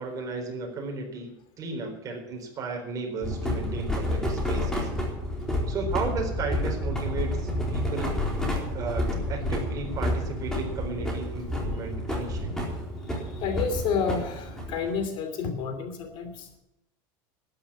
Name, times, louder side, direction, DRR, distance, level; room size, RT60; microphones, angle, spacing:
voice 1, 0.0-4.9 5.7-8.2 8.7-12.7, right 4 dB, 30° right, 2 dB, 4.2 m, -34 dB
sound 1, 3.2-15.1, left 1 dB, 5° left, 4.0 m, -30 dB
voice 2, 13.2-16.6, left 6 dB, 50° left, 8 dB, 2.8 m, -30 dB
12.5 x 10.5 x 8.7 m, 0.87 s
supercardioid pair, 145°, 11 cm